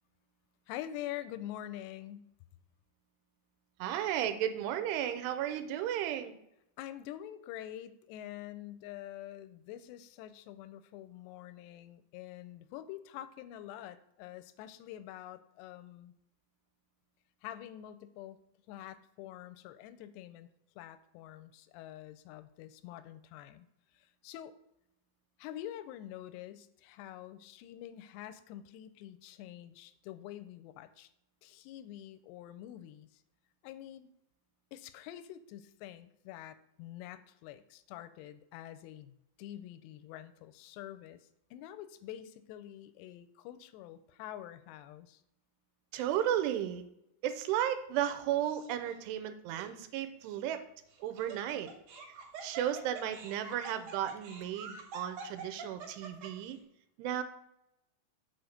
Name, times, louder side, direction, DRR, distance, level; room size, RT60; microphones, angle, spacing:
voice 1, 0.7-2.3 6.8-16.1 17.4-18.4 18.7-20.5 20.8-23.7 23.9-24.5 25.4-31.1 31.4-33.2 33.6-34.1 34.7-41.2 41.5-45.2, left 12 dB, 90° left, 12 dB, 2.7 m, -46 dB
voice 2, 3.8-6.3 45.9-46.8 47.2-50.6 51.0-51.7 52.4-56.6 57.0-57.2, right 11 dB, 90° right, 9 dB, 2.7 m, -34 dB
Laughter, 48.5-49.0 49.6-49.7 50.9-56.5, right 4 dB, 65° right, 2.3 m, -46 dB
7.0 x 4.2 x 6.4 m, 0.81 s
omnidirectional pair, 4.7 m